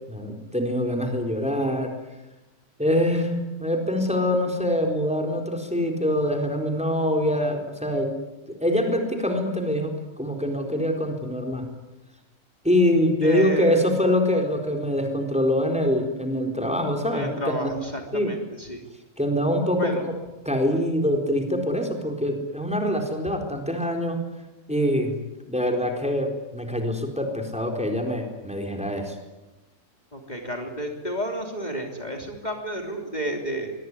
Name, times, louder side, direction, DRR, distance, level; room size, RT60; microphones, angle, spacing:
voice 1, 0.1-1.9 2.8-8.1 8.5-11.6 12.6-17.8 18.1-18.4 19.2-20.1 20.4-24.2 24.7-25.2 25.5-29.2, left 1 dB, 5° right, 3 dB, 4.2 m, -24 dB
voice 2, 13.2-13.9 17.1-18.8 19.8-20.0 30.1-33.7, equal, 30° left, 2 dB, 3.4 m, -31 dB
24.0 x 23.5 x 9.8 m, 1.0 s
omnidirectional pair, 1.4 m